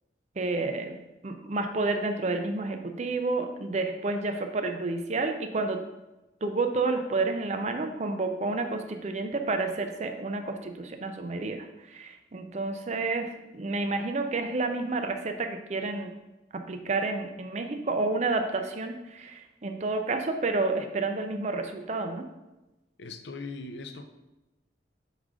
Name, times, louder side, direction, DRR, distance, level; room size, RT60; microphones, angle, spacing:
voice 1, 0.4-5.8 6.4-16.1 16.5-22.2, right 3 dB, 40° right, 6 dB, 0.5 m, -30 dB
voice 2, 23.0-24.1, left 3 dB, 70° left, 8 dB, 0.5 m, -39 dB
6.2 x 4.9 x 3.7 m, 1.0 s
head